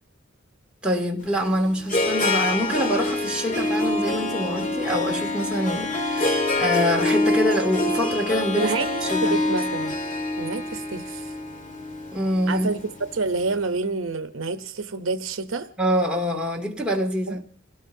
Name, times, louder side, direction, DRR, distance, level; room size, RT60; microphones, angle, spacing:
voice 1, 0.8-8.7 9.0-9.4 12.1-12.7 15.8-17.4, equal, 5° right, 2.6 m, -25 dB
Harp, 1.2-13.4, left 2 dB, 40° left, 1.9 m, -26 dB
voice 2, 8.5-10.0 10.4-11.3 12.5-12.8 13.1-15.7 17.3-17.4, right 3 dB, 70° right, 0.9 m, -28 dB
29.5 x 18.0 x 2.7 m
head